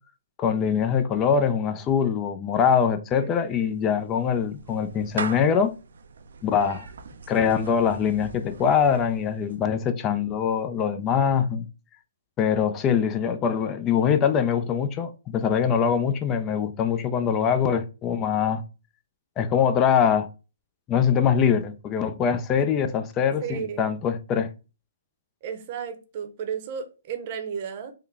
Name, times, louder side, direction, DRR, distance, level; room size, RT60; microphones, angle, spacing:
voice 1, 0.4-5.7 6.4-6.9 7.3-11.6 12.4-18.6 19.4-20.3 20.9-24.5, left 7 dB, 25° left, 0.3 m, -23 dB
voice 2, 3.2-3.9 23.4-23.8 25.4-27.9, right 7 dB, 45° right, 0.7 m, -34 dB
Clapping / Meow, 3.3-9.7, right 5 dB, 70° right, 0.4 m, -41 dB
3.7 x 2.1 x 3.2 m
hypercardioid pair, 140°, 0 cm